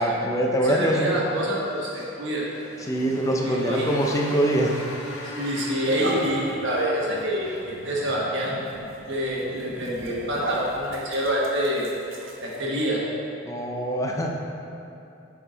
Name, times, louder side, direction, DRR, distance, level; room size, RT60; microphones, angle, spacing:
voice 1, 0.0-1.1 2.9-4.7 13.5-14.3, right 1 dB, 15° left, 0 dB, 0.5 m, -23 dB
voice 2, 0.5-2.4 3.4-3.9 5.4-8.6 9.1-11.9 12.4-13.0, equal, 60° right, -4 dB, 1.3 m, -27 dB
Motorcycle, 1.5-7.8, left 1 dB, 70° left, 1.3 m, -40 dB
sound 1, 4.6-4.8 5.4-12.8, right 1 dB, 80° right, 0.9 m, -37 dB
7.0 x 4.8 x 3.9 m, 2.7 s
head